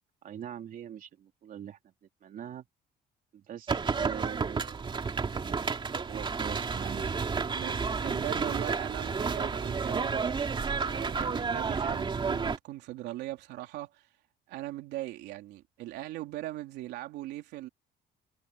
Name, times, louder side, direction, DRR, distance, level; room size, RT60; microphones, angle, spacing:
voice 1, 0.2-1.8 2.2-2.6 3.3-4.9 5.3-5.6 6.1-7.1, right 10 dB, 55° right, 3.1 m, -43 dB
sound 1, 3.7-12.6, right 5 dB, 30° right, 2.7 m, -31 dB
voice 2, 7.5-10.5 10.8-14.1 14.5-17.7, right 16 dB, 85° right, 3.4 m, -40 dB
cardioid pair, 110°, 17 cm